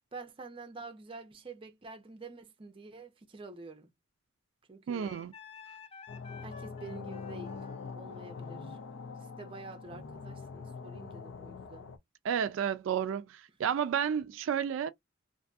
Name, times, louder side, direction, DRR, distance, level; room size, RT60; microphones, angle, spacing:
voice 1, 0.1-3.9 4.7-5.1 6.4-7.6 7.9-8.8 9.4-11.9, right 3 dB, 25° right, 0.5 m, -47 dB
voice 2, 4.9-5.3 12.2-14.9, right 8 dB, 85° right, 0.3 m, -31 dB
Wind instrument woodwind instrument, 5.0-10.4, left 4 dB, 30° left, 0.5 m, -53 dB
sound 1, 6.1-12.0, left 5 dB, 90° left, 0.5 m, -44 dB
2.6 x 2.5 x 2.3 m
head